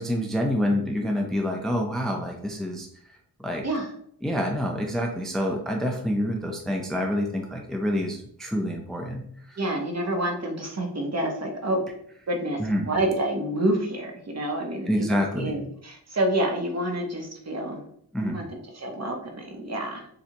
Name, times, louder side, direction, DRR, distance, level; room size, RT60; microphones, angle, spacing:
voice 1, 0.0-2.9 3.4-3.6 4.2-9.2 9.5-9.6 12.6-12.9 14.9-15.5 18.1-18.4, equal, ahead, 1 dB, 0.6 m, -27 dB
voice 2, 9.6-11.8 12.3-17.8 18.2-20.1, right 1 dB, 40° right, 1 dB, 1.0 m, -28 dB
6.7 x 2.3 x 2.9 m, 0.66 s
wide cardioid pair, 85°, 40 cm